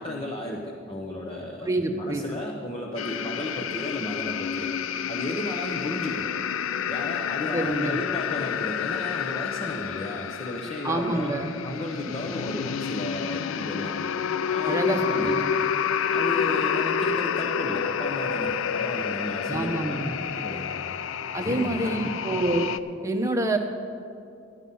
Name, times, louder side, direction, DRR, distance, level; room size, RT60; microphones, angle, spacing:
voice 1, 0.0-4.7 5.1-6.3 6.9-11.3 11.6-13.9 14.5-15.4 16.1-20.0 20.4-21.0 21.4-22.1, left 1 dB, 30° left, -1 dB, 1.0 m, -34 dB
voice 2, 1.6-2.2 7.5-8.0 10.8-11.5 14.6-15.4 17.1-17.2 19.5-20.1 21.3-22.6 23.0-23.6, right 2 dB, 15° right, 3 dB, 1.0 m, -27 dB
sound 1, 3.0-22.8, left 7 dB, 75° left, 0.4 m, -29 dB
13.5 x 10.0 x 5.5 m, 2.4 s
head